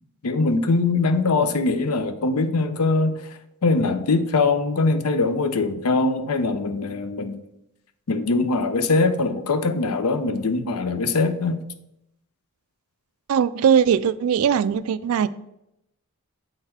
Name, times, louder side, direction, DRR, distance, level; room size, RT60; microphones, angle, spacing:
voice 1, 0.2-3.2 3.6-7.4 8.1-11.6, left 3 dB, 80° left, 0.6 m, -22 dB
voice 2, 13.3-15.3, right 8 dB, 70° right, 0.3 m, -20 dB
7.8 x 3.9 x 4.3 m
head